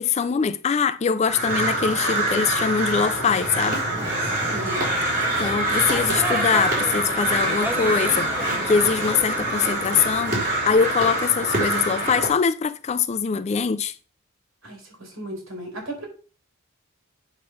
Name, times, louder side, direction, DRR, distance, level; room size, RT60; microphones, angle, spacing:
voice 1, 0.0-3.8 5.4-14.0, left 6 dB, 30° left, 0.3 m, -23 dB
Crow, 1.2-12.3, right 1 dB, 40° right, 4.0 m, -25 dB
sound 1, 3.9-9.8, equal, 10° right, 0.8 m, -35 dB
voice 2, 4.5-4.9 14.6-16.1, right 1 dB, 65° right, 4.0 m, -35 dB
8.6 x 3.6 x 6.5 m
head